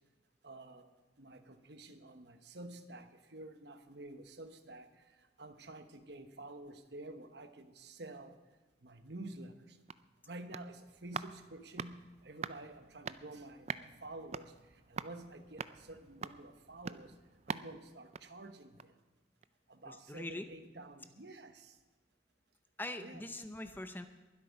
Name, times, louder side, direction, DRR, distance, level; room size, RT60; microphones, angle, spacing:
voice 1, 0.4-0.9 1.2-8.4 8.8-9.8 10.3-17.1 17.5-18.9 19.7-21.8 23.0-23.3, right 2 dB, 60° right, 8 dB, 1.1 m, -50 dB
sound 1, 9.6-19.1 19.4-19.5, right 6 dB, 35° right, 0.4 m, -46 dB
voice 2, 19.9-20.5 22.8-24.1, left 1 dB, 10° left, 8 dB, 0.6 m, -42 dB
22.0 x 8.2 x 5.3 m, 1.3 s
head